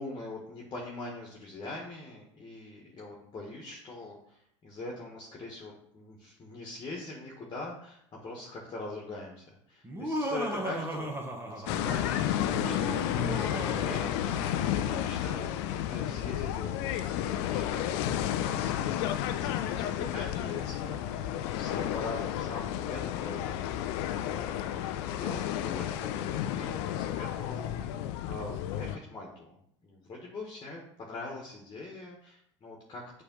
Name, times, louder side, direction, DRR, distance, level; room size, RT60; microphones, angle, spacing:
voice 1, 0.0-11.1 11.4-29.6 29.8-33.2, left 2 dB, 30° left, -1 dB, 1.5 m, -43 dB
Laughter, 9.8-12.0 12.5-14.8, equal, 15° right, 1.3 m, -36 dB
sound 1, 11.7-29.0, left 11 dB, 60° left, 0.5 m, -32 dB
6.9 x 3.4 x 5.4 m, 0.71 s
figure-of-eight pair, 75°, 16 cm